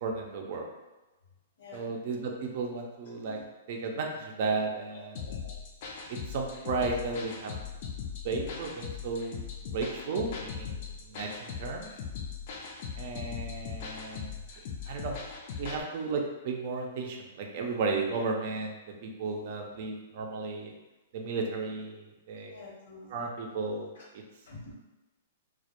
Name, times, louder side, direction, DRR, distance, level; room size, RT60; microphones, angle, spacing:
voice 1, 0.0-0.6 1.7-3.4 3.7-5.2 6.1-7.5 8.2-9.4 9.7-11.9 13.0-14.3 14.9-15.1 15.6-18.8 19.0-20.7 21.1-22.6 23.1-23.9, right 4 dB, 55° right, 2 dB, 0.4 m, -34 dB
voice 2, 4.9-5.5 22.5-23.3 23.9-24.0 24.5-24.7, left 2 dB, 75° left, -3 dB, 0.8 m, -48 dB
sound 1, 5.1-15.8, left 6 dB, 50° left, 0.4 m, -39 dB
2.1 x 2.1 x 2.8 m, 1.1 s
hypercardioid pair, 140°, 0 cm